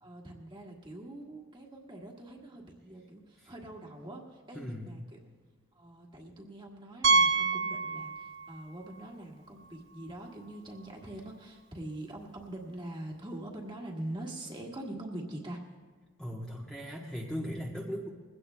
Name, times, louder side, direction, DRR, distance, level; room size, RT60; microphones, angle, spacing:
voice 1, 0.0-5.2 5.7-15.6, right 1 dB, 20° right, 0 dB, 1.6 m, -43 dB
voice 2, 4.5-5.0 16.2-18.1, equal, 5° left, -3 dB, 1.0 m, -38 dB
Piano, 7.0-8.6 8.9-9.1 9.6-9.7 10.0-10.1 12.2-12.3, right 4 dB, 60° right, 0.7 m, -27 dB
21.5 x 16.5 x 2.2 m, 1.4 s
head